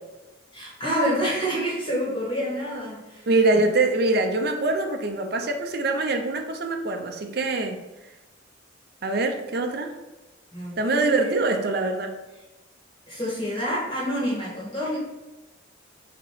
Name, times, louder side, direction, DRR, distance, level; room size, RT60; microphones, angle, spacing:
voice 1, 0.5-3.2 3.7-3.8 10.5-11.4 13.1-15.0, equal, 25° left, -6 dB, 1.9 m, -28 dB
voice 2, 3.3-7.8 9.0-9.9 10.8-12.2, right 2 dB, 55° right, 4 dB, 0.7 m, -24 dB
6.5 x 3.0 x 4.9 m, 1.1 s
head